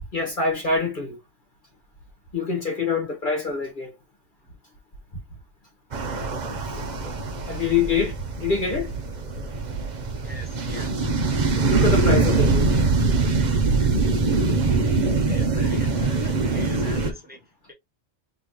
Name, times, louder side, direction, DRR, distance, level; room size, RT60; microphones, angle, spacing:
voice 1, 0.1-1.2 2.3-3.9 6.6-6.7 7.5-8.9 11.7-12.7 13.1-13.2, left 4 dB, 45° left, 1.5 m, -25 dB
sound 1, 5.9-17.1, right 3 dB, 45° right, 0.8 m, -23 dB
voice 2, 10.2-10.9 13.7-14.3 15.0-17.7, left 2 dB, 10° right, 1.4 m, -44 dB
4.1 x 3.2 x 2.9 m
omnidirectional pair, 1.2 m